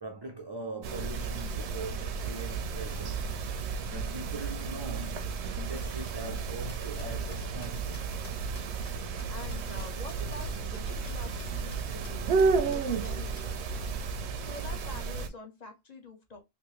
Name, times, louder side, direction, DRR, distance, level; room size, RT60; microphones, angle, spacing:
voice 1, 0.0-3.2 3.6-8.2, right 2 dB, 40° right, 0.3 m, -42 dB
sound 1, 0.8-15.3, right 5 dB, 85° right, 0.9 m, -32 dB
sound 2, 5.5-10.2 10.4-10.5 10.7-10.8 11.1-11.2 11.4-11.8 12.0-12.1 12.4-13.5, left 3 dB, 70° left, 1.4 m, -53 dB
voice 2, 9.3-13.6 14.4-16.4, left 4 dB, 40° left, 0.9 m, -46 dB
3.4 x 2.8 x 3.0 m
omnidirectional pair, 1.1 m